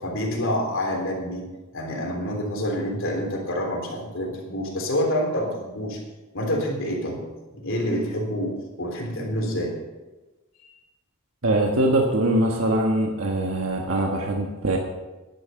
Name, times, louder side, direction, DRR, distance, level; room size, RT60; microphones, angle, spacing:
voice 1, 0.0-1.5 1.7-6.0 6.3-7.3 7.5-9.8 10.6-10.7, equal, 65° left, 0 dB, 3.5 m, -27 dB
voice 2, 11.4-14.8, right 1 dB, 75° right, 1 dB, 1.4 m, -22 dB
11.0 x 11.0 x 5.7 m, 1.1 s
head